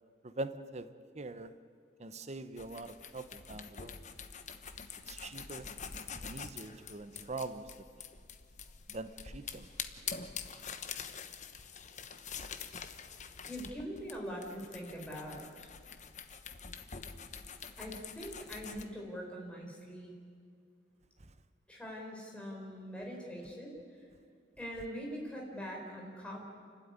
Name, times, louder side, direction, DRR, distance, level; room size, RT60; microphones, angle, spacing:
voice 1, 0.2-1.5 2.0-4.0 5.1-5.7 6.2-7.7 8.9-9.7 21.2-21.3, right 2 dB, 35° right, 12 dB, 0.9 m, -43 dB
sound 1, 2.6-18.8, left 6 dB, 40° left, 1.1 m, -46 dB
voice 2, 13.5-15.7 17.8-20.1 21.7-24.0 24.6-26.5, equal, 5° left, -2 dB, 4.6 m, -43 dB
29.0 x 12.5 x 9.7 m, 2.2 s
head